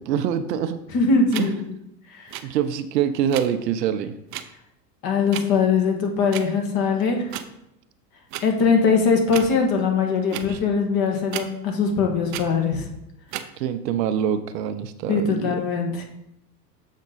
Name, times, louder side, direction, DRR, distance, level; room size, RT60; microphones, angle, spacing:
voice 1, 0.0-0.8 1.4-1.5 2.4-4.2 10.3-10.6 13.6-15.6, right 9 dB, 75° right, 10 dB, 0.8 m, -25 dB
voice 2, 0.9-1.6 2.1-2.3 5.0-7.3 8.4-12.9 15.1-16.0, left 5 dB, 45° left, 2 dB, 1.7 m, -21 dB
sound 1, 1.3-1.5 2.3-2.4 3.3-3.5 4.3-4.4 5.3-5.4 6.3-6.5 7.3-7.5 8.3-8.4 9.3-9.5 10.3-10.5 11.3-11.5 12.3-12.4 13.3-13.5, right 12 dB, 35° right, 0.5 m, -32 dB
7.3 x 4.4 x 4.0 m, 0.81 s
hypercardioid pair, 100°, 49 cm